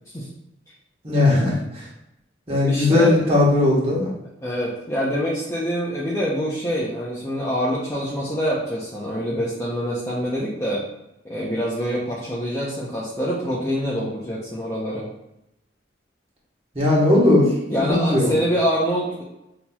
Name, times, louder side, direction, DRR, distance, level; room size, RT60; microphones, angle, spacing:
voice 1, 1.0-1.8 2.5-4.1 16.7-17.5 17.9-18.3, left 2 dB, 30° right, -5 dB, 1.3 m, -18 dB
voice 2, 2.6-3.3 4.4-10.8 11.2-15.1 17.7-19.2, equal, 15° left, -6 dB, 0.6 m, -25 dB
5.9 x 2.9 x 2.3 m, 0.86 s
head